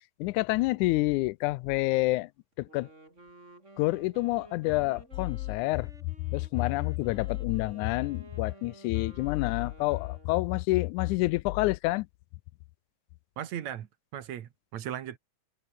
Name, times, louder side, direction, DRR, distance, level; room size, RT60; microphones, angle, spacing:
voice 1, 0.2-2.3 2.6-2.9 3.8-5.9 6.3-12.1, left 20 dB, 90° left, 2.1 m, -28 dB
Wind instrument woodwind instrument, 2.5-10.5, right 2 dB, 20° right, 5.8 m, -53 dB
voice 2, 13.4-15.2, right 10 dB, 70° right, 2.7 m, -37 dB
omnidirectional pair, 3.4 m